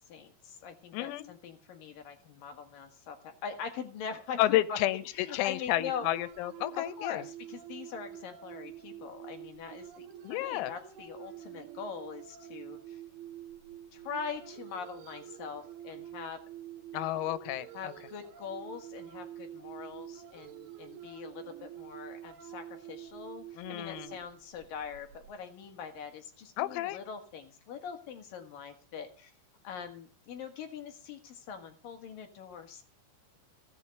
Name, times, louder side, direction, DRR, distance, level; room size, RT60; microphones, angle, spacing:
voice 1, 0.1-4.8 5.1-6.1 6.8-13.0 13.9-16.4 17.7-29.3 29.6-32.8, left 6 dB, 60° left, 6 dB, 2.6 m, -42 dB
voice 2, 0.9-1.3 4.4-7.2 10.2-10.7 16.9-17.9 23.6-24.2 26.6-27.0, left 15 dB, 90° left, 15 dB, 3.7 m, -31 dB
sound 1, 5.8-25.3, right 12 dB, 70° right, 3.9 m, -47 dB
16.5 x 8.4 x 7.7 m, 0.38 s
omnidirectional pair, 6.0 m